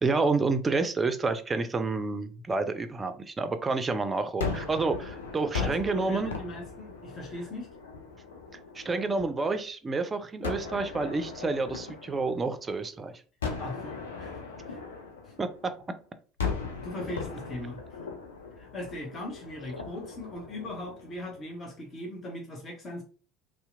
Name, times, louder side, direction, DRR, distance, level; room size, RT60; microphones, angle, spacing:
voice 1, 0.0-6.4 8.7-13.1 15.4-15.7, right 3 dB, 25° right, 10 dB, 0.4 m, -29 dB
Gunshot gunfire, 4.4-9.5 10.4-12.8 13.4-15.9 16.4-21.6, left 5 dB, 75° left, 0.4 m, -38 dB
voice 2, 5.6-7.7 13.6-14.4 14.7-14.8 15.2-15.3 16.8-18.0 18.6-23.0, left 1 dB, 35° left, 0 dB, 0.7 m, -39 dB
2.7 x 2.0 x 2.5 m, 0.39 s
figure-of-eight pair, 65°, 0 cm